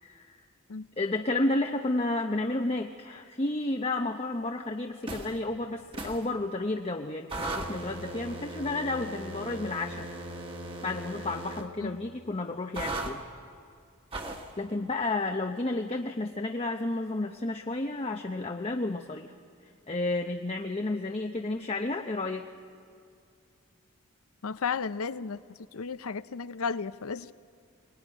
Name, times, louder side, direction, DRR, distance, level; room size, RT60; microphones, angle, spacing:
voice 1, 0.0-0.4 1.0-10.1 10.8-13.2 14.6-19.3 19.6-22.5, left 2 dB, 25° left, 4 dB, 0.7 m, -31 dB
sound 1, 5.0-5.4 5.9-6.3 7.3-11.7 12.7-13.1 14.1-14.5, right 2 dB, 25° right, 1.5 m, -37 dB
voice 2, 24.4-25.4 25.7-27.3, left 5 dB, 80° left, 15 dB, 0.6 m, -33 dB
24.0 x 19.5 x 9.8 m, 2.3 s
head